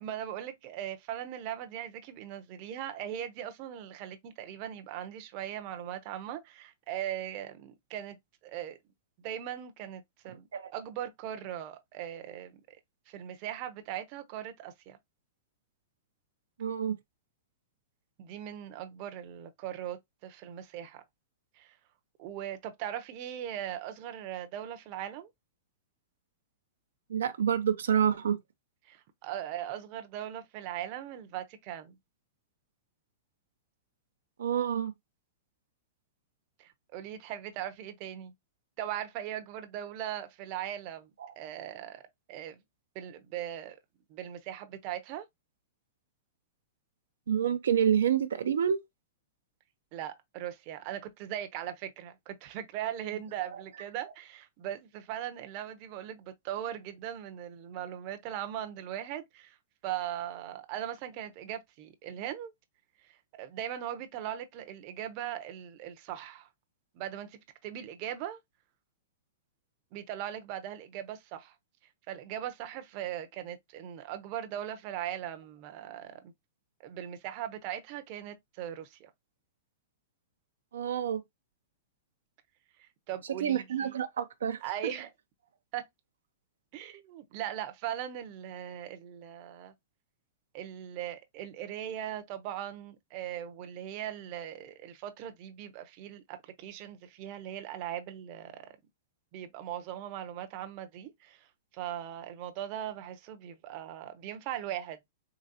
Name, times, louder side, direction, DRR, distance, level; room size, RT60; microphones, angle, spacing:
voice 1, 0.0-8.2 8.4-8.8 9.2-12.8 13.1-15.0 18.2-21.0 21.6-21.8 22.2-25.3 28.9-31.9 36.6-38.3 38.8-41.1 41.4-42.0 42.3-42.6 42.9-43.8 44.1-45.3 49.9-59.6 59.8-62.5 63.0-66.5 66.9-68.4 69.9-71.5 72.1-76.3 76.8-79.1 82.8-84.0 84.6-85.1 85.7-85.8 86.7-89.7 90.5-98.7 99.3-101.5 101.7-105.1, right 11 dB, 45° right, 0.7 m, -39 dB
voice 2, 16.6-16.9 27.1-28.4 34.4-34.9 41.2-41.3 47.3-48.8 80.7-81.2 83.4-84.6, right 8 dB, 85° right, 0.6 m, -28 dB
3.9 x 3.0 x 2.8 m
hypercardioid pair, 135°, 0 cm